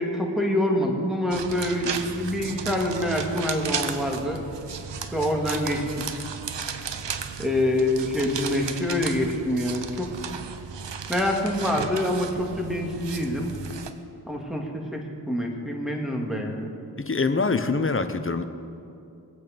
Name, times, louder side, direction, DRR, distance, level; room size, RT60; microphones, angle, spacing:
voice 1, 0.0-4.4 5.1-6.0 7.4-10.1 11.1-13.5 14.3-16.7, left 1 dB, ahead, 0 dB, 2.4 m, -26 dB
sound 1, 1.3-13.9, right 6 dB, 80° right, 0.8 m, -35 dB
voice 2, 17.0-18.4, left 4 dB, 30° left, 9 dB, 0.9 m, -24 dB
21.0 x 8.4 x 5.2 m, 2.6 s
wide cardioid pair, 55°, 43 cm